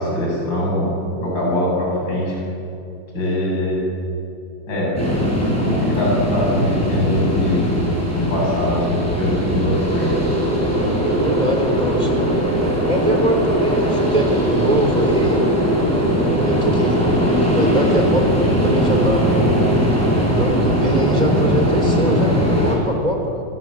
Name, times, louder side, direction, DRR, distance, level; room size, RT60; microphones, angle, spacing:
voice 1, 0.0-2.4 3.1-3.8 4.7-4.9 5.2-7.6 8.1-10.1, left 1 dB, 80° left, -4 dB, 8.2 m, -22 dB
sound 1, 5.0-22.8, equal, 5° left, 7.5 m, -19 dB
voice 2, 11.1-12.2 12.9-15.5 16.2-17.0 17.4-19.3 20.2-23.4, right 1 dB, 20° right, 3 dB, 3.7 m, -23 dB
28.5 x 20.5 x 7.7 m, 2.7 s
omnidirectional pair, 2.0 m